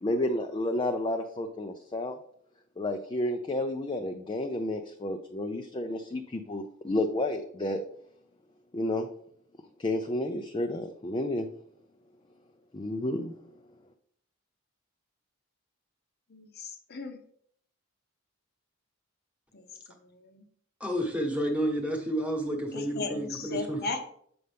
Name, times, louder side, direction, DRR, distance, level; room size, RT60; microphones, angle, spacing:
voice 1, 0.0-2.2 2.8-7.8 8.7-9.1 9.8-11.5 12.7-13.4, left 1 dB, 25° left, 5 dB, 0.4 m, -31 dB
voice 2, 16.3-17.2 19.5-20.5 22.7-24.1, left 3 dB, 50° left, 5 dB, 0.8 m, -37 dB
voice 3, 20.8-23.8, equal, 5° right, 1 dB, 1.2 m, -30 dB
7.8 x 5.4 x 3.4 m, 0.65 s
head